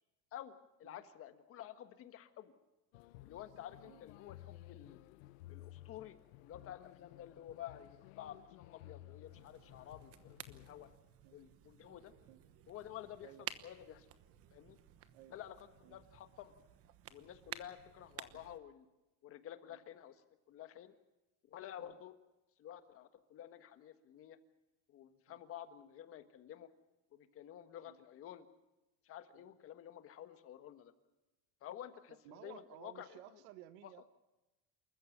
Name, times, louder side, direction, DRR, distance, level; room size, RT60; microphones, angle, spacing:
voice 1, 0.3-2.5 3.2-5.0 5.5-10.9 11.3-12.1 12.7-14.1 14.5-14.8 15.3-15.5 15.8-16.5 17.1-18.9 19.2-20.1 20.5-20.9 21.4-22.1 22.6-24.4 24.9-26.7 27.1-28.5 29.0-30.9 31.6-33.2, left 11 dB, 35° left, 9 dB, 1.5 m, -51 dB
sound 1, 2.9-11.0, left 16 dB, 85° left, 1.0 m, -56 dB
sound 2, 9.3-18.6, right 11 dB, 35° right, 1.2 m, -53 dB
voice 2, 32.1-34.1, right 13 dB, 75° right, 12 dB, 1.4 m, -57 dB
28.0 x 14.5 x 7.2 m, 1.0 s
cardioid pair, 160°, 39 cm